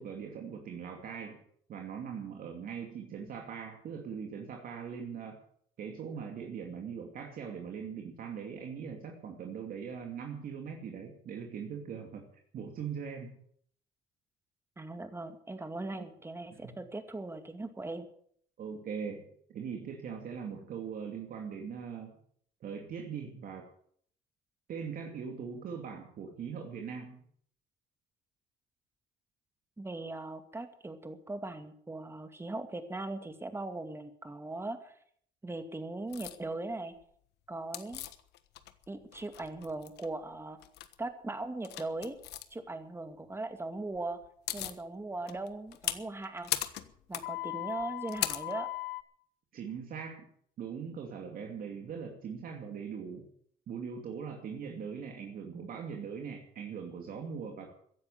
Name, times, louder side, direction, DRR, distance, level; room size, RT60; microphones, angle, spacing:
voice 1, 0.0-1.4 1.7-5.4 5.8-12.3 12.5-13.4 16.0-16.1 16.5-16.6 18.6-22.2 22.6-23.7 24.7-27.2 49.5-50.3 50.6-53.2 53.7-57.7, right 6 dB, 55° right, 2 dB, 2.7 m, -41 dB
voice 2, 14.8-18.1 29.8-35.0 35.4-36.9 37.5-38.1 38.9-40.6 41.0-42.2 42.5-44.2 44.5-46.5 47.1-48.7, right 2 dB, 15° right, 8 dB, 2.3 m, -39 dB
sound 1, 36.1-36.4 37.7-38.8 39.1-40.1 40.6-40.9 41.6-42.4 44.0-44.1 44.2-44.8 45.3-49.0, left 15 dB, 80° left, 1.3 m, -37 dB
15.5 x 10.5 x 8.4 m, 0.63 s
cardioid pair, 110°, 17 cm